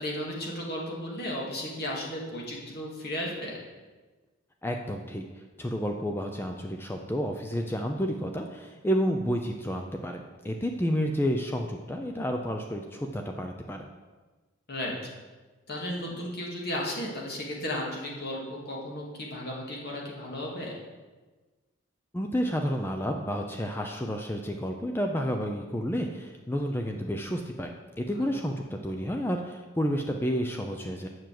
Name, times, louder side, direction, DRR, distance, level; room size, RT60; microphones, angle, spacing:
voice 1, 0.0-3.6 14.7-15.0 15.7-20.8 28.2-28.3, left 1 dB, 50° left, -2 dB, 2.0 m, -34 dB
voice 2, 4.6-5.2 5.6-13.9 22.1-27.7 28.0-31.1, equal, 10° left, 3 dB, 0.5 m, -30 dB
7.0 x 6.2 x 7.6 m, 1.3 s
head